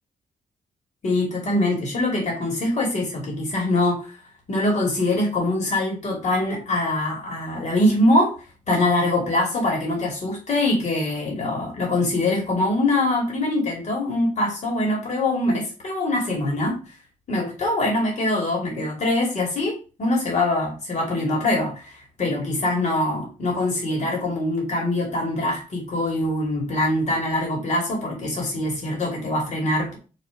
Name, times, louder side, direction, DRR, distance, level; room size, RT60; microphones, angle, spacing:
voice 1, 1.0-4.1 4.5-8.3 8.7-16.8 17.3-30.0, left 1 dB, 55° left, -1 dB, 2.9 m, -23 dB
5.1 x 4.5 x 5.2 m, 0.34 s
wide cardioid pair, 145°, 14 cm